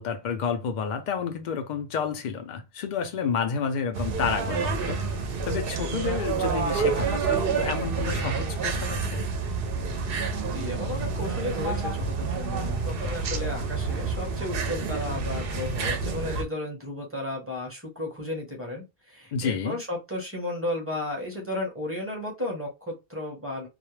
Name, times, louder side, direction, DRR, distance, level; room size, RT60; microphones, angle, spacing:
voice 1, 0.0-5.0 5.4-9.2 19.3-19.8, left 6 dB, 55° left, 0.5 m, -30 dB
sound 1, 3.9-16.4, right 4 dB, 65° right, 0.7 m, -28 dB
voice 2, 10.5-23.7, left 1 dB, 15° right, 0.7 m, -34 dB
2.3 x 2.1 x 3.0 m
omnidirectional pair, 1.1 m